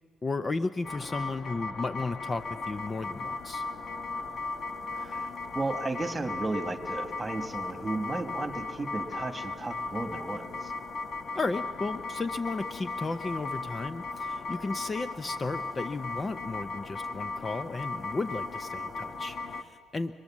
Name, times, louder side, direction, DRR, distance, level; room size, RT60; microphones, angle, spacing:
voice 1, 0.2-3.6 11.3-20.1, left 3 dB, 30° left, 12 dB, 0.5 m, -34 dB
sound 1, 0.8-19.6, left 3 dB, 55° left, 1.2 m, -37 dB
voice 2, 4.9-10.7, right 2 dB, 20° right, 6 dB, 1.7 m, -34 dB
24.5 x 21.5 x 7.3 m, 2.2 s
cardioid pair, 90°, 0 cm